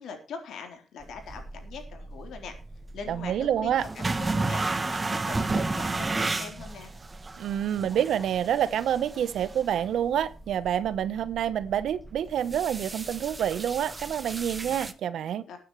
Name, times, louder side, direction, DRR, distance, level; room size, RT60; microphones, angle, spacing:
voice 1, 0.0-2.6 2.9-6.9 15.5-15.6, left 5 dB, 85° left, 3.8 m, -42 dB
sound 1, 1.0-14.9, right 3 dB, 20° right, 1.0 m, -34 dB
voice 2, 3.1-3.8 7.4-15.4, right 9 dB, 80° right, 0.9 m, -27 dB
20.0 x 9.5 x 3.2 m
wide cardioid pair, 150°, 0 cm